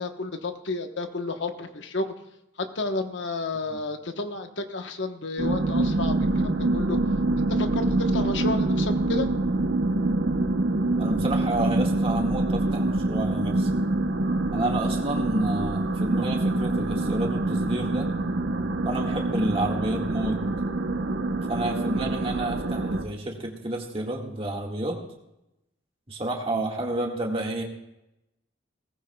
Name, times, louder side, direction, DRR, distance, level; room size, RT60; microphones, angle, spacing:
voice 1, 0.0-2.1 2.6-7.0 7.5-9.3, left 3 dB, 75° left, 6 dB, 1.1 m, -31 dB
sound 1, 5.4-23.0, right 2 dB, 75° right, 0.9 m, -25 dB
voice 2, 11.0-13.7 14.5-18.1 18.8-20.4 21.5-25.0 26.1-27.6, right 1 dB, 30° right, 0 dB, 1.7 m, -30 dB
18.5 x 15.0 x 2.3 m, 0.90 s
head